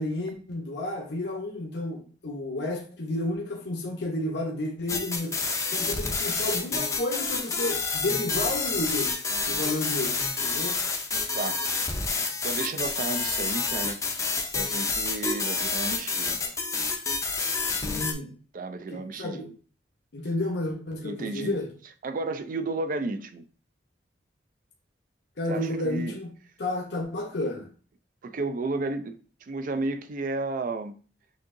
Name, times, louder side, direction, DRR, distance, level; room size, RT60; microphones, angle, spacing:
voice 1, 0.0-5.3 5.7-9.1 9.5-10.2 10.4-10.8 17.8-18.3 18.9-19.5 20.1-21.7 25.4-26.3 26.6-27.7, left 1 dB, 70° left, 0.8 m, -31 dB
sound 1, 4.9-18.1, left 4 dB, 15° left, 0.5 m, -29 dB
voice 2, 12.2-14.0 14.5-16.6 18.5-19.5 21.0-21.6 22.0-23.4 25.5-26.2 28.2-31.0, right 3 dB, 50° right, 0.4 m, -33 dB
6.3 x 2.8 x 2.6 m
head